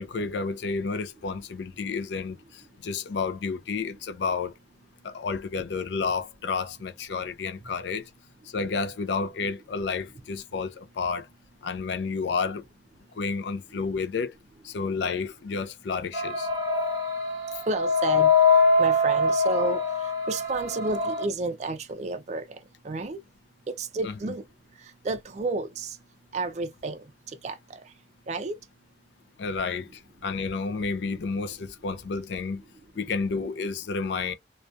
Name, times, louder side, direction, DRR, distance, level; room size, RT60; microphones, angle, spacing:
voice 1, 0.0-2.4 2.8-4.5 5.0-8.0 8.5-11.3 11.6-12.6 13.2-14.3 14.6-16.5 24.0-24.1 29.4-29.9 30.2-32.6 33.0-34.3, left 4 dB, 75° left, 0.4 m, -30 dB
sound 1, 16.1-21.3, left 3 dB, 15° right, 1.0 m, -23 dB
voice 2, 17.7-18.3 18.8-19.8 20.3-22.4 22.8-23.2 23.7-24.4 25.0-26.0 26.3-27.0 27.4-27.6 28.3-28.6, right 3 dB, 40° right, 0.3 m, -30 dB
2.3 x 2.2 x 2.5 m
head